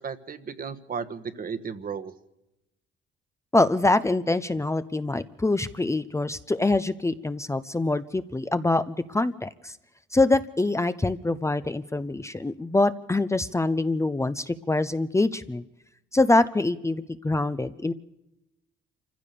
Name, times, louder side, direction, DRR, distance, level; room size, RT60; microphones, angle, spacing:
voice 1, 0.0-2.1, right 6 dB, 45° right, 10 dB, 1.4 m, -34 dB
voice 2, 3.5-9.8 10.1-15.6 16.1-17.9, left 2 dB, 15° left, 12 dB, 0.7 m, -24 dB
26.5 x 15.5 x 6.9 m, 0.91 s
cardioid pair, 90°, 20 cm